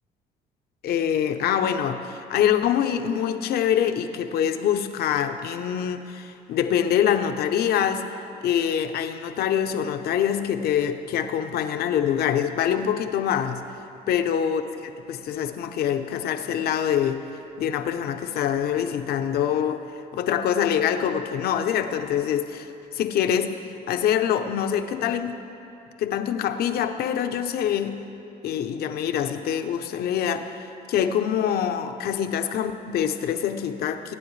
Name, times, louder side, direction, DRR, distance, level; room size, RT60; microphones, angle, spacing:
voice 1, 0.8-13.6 14.1-17.2 17.6-19.8 20.1-25.4 26.0-28.0 28.4-34.1, left 9 dB, 65° left, 8 dB, 0.8 m, -25 dB
23.0 x 9.6 x 3.3 m, 2.7 s
cardioid pair, 110°, 17 cm